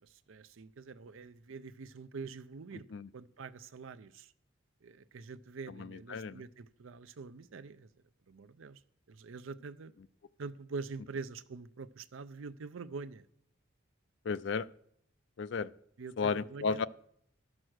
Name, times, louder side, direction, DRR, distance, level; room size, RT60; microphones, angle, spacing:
voice 1, 0.0-2.9 3.1-4.3 4.8-7.9 8.3-8.8 9.1-9.9 10.4-13.2 16.0-16.8, right 4 dB, 75° right, 0.5 m, -45 dB
voice 2, 5.8-6.4 14.3-14.7 15.4-15.7 16.2-16.8, left 5 dB, 60° left, 0.4 m, -33 dB
12.5 x 6.1 x 6.3 m
head